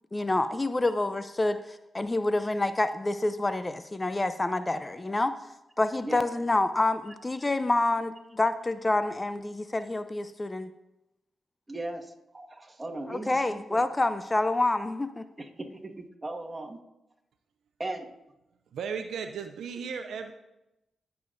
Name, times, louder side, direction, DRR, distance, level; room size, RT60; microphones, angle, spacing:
voice 1, 0.1-5.4 5.8-10.7 13.1-15.2, left 2 dB, 30° left, 12 dB, 0.6 m, -27 dB
voice 2, 11.7-13.8 15.4-16.8 17.8-18.1, right 2 dB, 25° right, 1 dB, 1.6 m, -38 dB
voice 3, 18.7-20.3, right 6 dB, 80° right, 7 dB, 0.5 m, -35 dB
18.0 x 6.9 x 2.6 m, 0.91 s
supercardioid pair, 40°, 0 cm